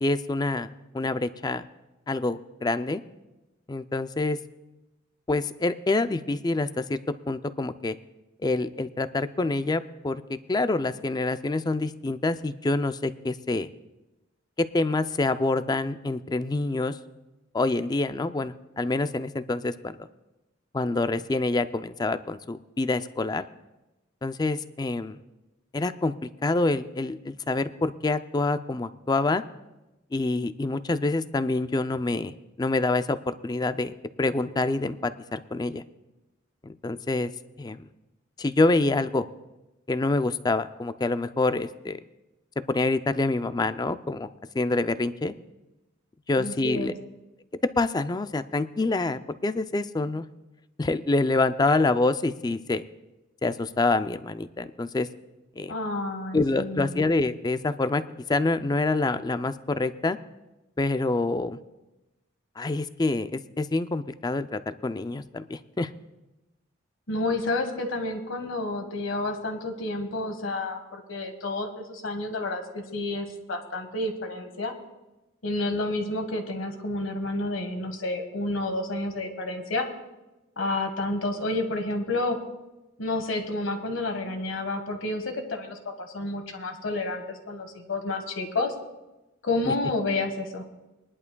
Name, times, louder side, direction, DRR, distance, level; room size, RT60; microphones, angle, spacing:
voice 1, 0.0-1.7 2.1-3.0 3.7-4.4 5.3-7.0 7.3-7.9 8.4-10.2 10.5-13.7 14.6-17.0 17.5-20.0 20.7-23.5 24.2-25.2 25.7-26.1 26.4-29.4 30.1-35.8 36.6-37.3 37.6-37.8 38.4-39.2 39.9-42.0 42.7-44.3 44.5-45.3 46.3-46.9 47.8-50.3 50.8-52.8 53.4-55.1 55.6-55.7 56.3-58.0 58.3-60.2 60.8-61.6 62.6-65.9 89.7-89.8, left 2 dB, 20° left, 12 dB, 0.4 m, -26 dB
voice 2, 46.4-46.9 55.7-57.0 67.1-74.7 75.4-79.9 80.6-82.4 83.0-88.7 89.4-90.6, left 2 dB, 70° left, 5 dB, 1.5 m, -30 dB
22.5 x 11.0 x 2.3 m, 1.0 s
head